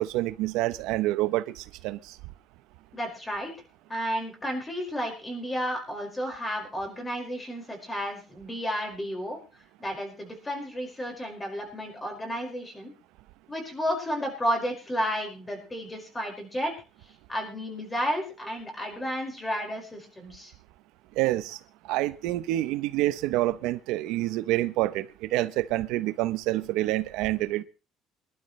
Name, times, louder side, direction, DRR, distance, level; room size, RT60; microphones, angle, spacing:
voice 1, 0.0-2.2 21.2-21.6 21.9-27.6, right 16 dB, 85° right, 0.7 m, -27 dB
voice 2, 2.9-3.5 3.9-9.4 9.8-12.9 13.5-16.7 17.3-20.5, equal, 15° left, 5.1 m, -32 dB
24.0 x 12.0 x 3.2 m
cardioid pair, 145°, 0 cm